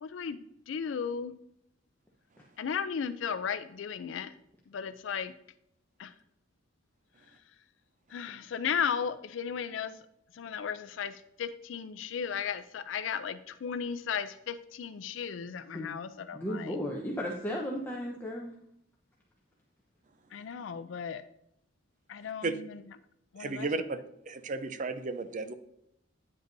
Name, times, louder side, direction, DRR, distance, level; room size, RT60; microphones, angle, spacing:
voice 1, 0.0-1.3 2.6-4.3 4.7-5.3 6.0-6.1 8.1-10.0 10.3-16.7 20.3-21.2 22.1-22.6 23.3-23.7, left 7 dB, 80° left, 0.4 m, -35 dB
voice 2, 16.3-18.5, equal, 10° left, 0.9 m, -35 dB
voice 3, 23.4-24.0 24.3-25.5, right 3 dB, 45° right, 0.6 m, -33 dB
9.3 x 7.9 x 2.6 m
head